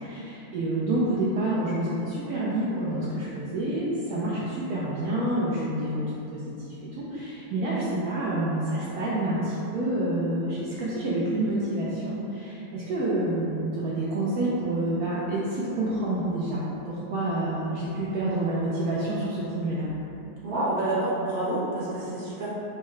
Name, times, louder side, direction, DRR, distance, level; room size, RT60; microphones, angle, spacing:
voice 1, 0.0-6.0 6.3-6.5 7.0-19.9, right 1 dB, 70° right, -8 dB, 1.0 m, -28 dB
voice 2, 20.4-22.5, right 2 dB, 35° right, -10 dB, 0.8 m, -28 dB
4.6 x 2.2 x 3.1 m, 2.9 s
omnidirectional pair, 1.9 m